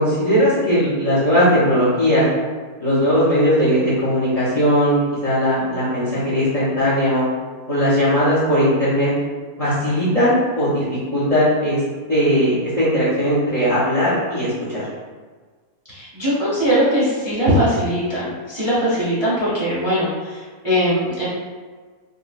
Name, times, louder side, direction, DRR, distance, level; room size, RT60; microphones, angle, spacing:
voice 1, 0.0-2.2 2.8-7.3 7.7-9.1 9.6-10.8 11.1-11.8 12.1-14.8, equal, 40° left, -10 dB, 0.5 m, -18 dB
voice 2, 15.9-21.3, equal, 25° right, -10 dB, 0.7 m, -20 dB
3.6 x 2.1 x 2.4 m, 1.5 s
omnidirectional pair, 1.6 m